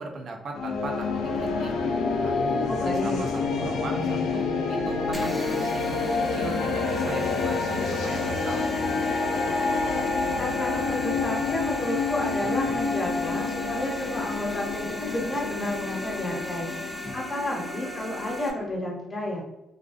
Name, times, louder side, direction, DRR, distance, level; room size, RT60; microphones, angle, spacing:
voice 1, 0.0-1.7 2.2-9.2, right 2 dB, 55° right, 1 dB, 0.5 m, -38 dB
sound 1, 0.5-18.7, left 4 dB, 85° left, 0.3 m, -28 dB
voice 2, 2.7-3.2 10.4-19.4, left 1 dB, 25° left, -3 dB, 0.8 m, -31 dB
sound 2, 5.1-18.5, left 1 dB, ahead, 0.4 m, -37 dB
2.4 x 2.1 x 2.4 m, 0.94 s
cardioid pair, 90°, 0 cm